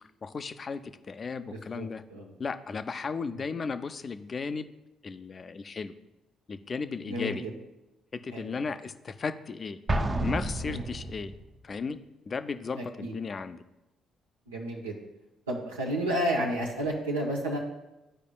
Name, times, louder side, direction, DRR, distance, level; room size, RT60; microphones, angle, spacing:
voice 1, 0.2-0.8 1.1-2.0 2.4-4.7 5.0-5.9 6.5-7.5 8.2-9.8 10.2-11.3 11.6-12.0 12.3-13.6, left 5 dB, 40° left, 10 dB, 0.4 m, -35 dB
voice 2, 1.5-2.3 3.3-3.4 7.0-7.5 8.3-8.6 10.6-10.8 12.8-13.2 14.5-15.0 15.5-17.6, right 1 dB, 90° right, -3 dB, 0.7 m, -31 dB
Explosion, 9.9-11.5, right 1 dB, 30° right, 0.6 m, -30 dB
12.0 x 4.9 x 2.3 m, 0.97 s
hypercardioid pair, 45°, 0 cm